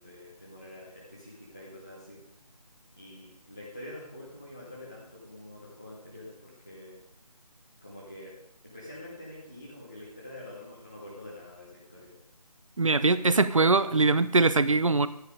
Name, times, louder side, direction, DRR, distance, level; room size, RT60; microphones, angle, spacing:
voice 1, 0.0-2.2 3.0-7.0 7.8-8.3 8.6-12.1, left 1 dB, 5° left, -9 dB, 0.5 m, -46 dB
voice 2, 12.8-15.1, right 3 dB, 55° right, 14 dB, 0.8 m, -22 dB
11.5 x 10.5 x 5.0 m, 0.79 s
figure-of-eight pair, 160°, 20 cm